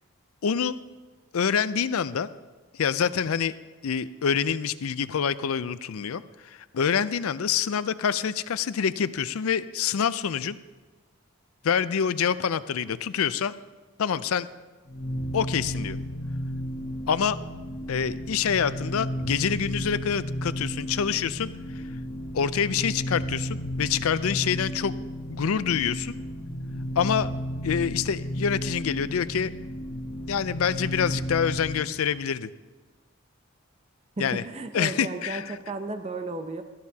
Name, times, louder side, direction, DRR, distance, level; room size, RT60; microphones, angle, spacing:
voice 1, 0.4-0.8 1.3-2.3 2.8-3.5 3.8-10.6 11.6-13.5 14.0-14.5 15.3-16.0 17.1-17.4 17.9-21.5 22.3-24.9 25.3-26.2 27.0-27.3 27.6-29.5 30.3-32.5 34.2-34.4 34.7-35.6, left 7 dB, 75° left, 15 dB, 0.4 m, -26 dB
sound 1, 14.9-31.9, equal, 55° left, 1.3 m, -33 dB
voice 2, 34.2-36.6, right 2 dB, 30° right, 7 dB, 0.6 m, -34 dB
16.0 x 13.5 x 2.8 m, 1.3 s
head